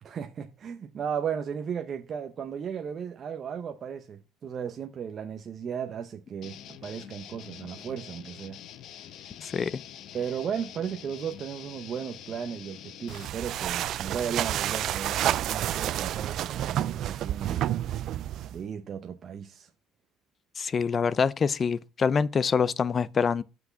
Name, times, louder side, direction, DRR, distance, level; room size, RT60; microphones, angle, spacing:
voice 1, 0.0-8.6 10.1-17.7 18.5-19.7, right 7 dB, 40° right, 0.7 m, -35 dB
sound 1, 6.4-13.3, left 10 dB, 60° left, 0.8 m, -46 dB
voice 2, 9.4-9.8 20.6-23.4, left 6 dB, 30° left, 0.5 m, -25 dB
sound 2, 13.1-18.6, right 12 dB, 55° right, 0.3 m, -29 dB
6.0 x 5.8 x 7.0 m
cardioid pair, 135°, 0 cm